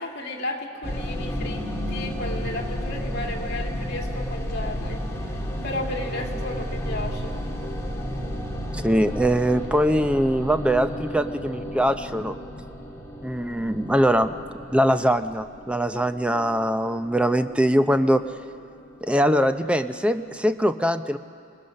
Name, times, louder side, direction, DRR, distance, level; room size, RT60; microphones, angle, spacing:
voice 1, 0.0-7.3, left 2 dB, 55° left, 1 dB, 2.4 m, -34 dB
sound 1, 0.8-19.2, equal, 15° left, 2.0 m, -33 dB
voice 2, 8.7-12.4 13.2-14.3 14.7-18.2 19.0-21.2, equal, 5° right, 9 dB, 0.6 m, -22 dB
28.5 x 20.5 x 6.5 m, 2.3 s
head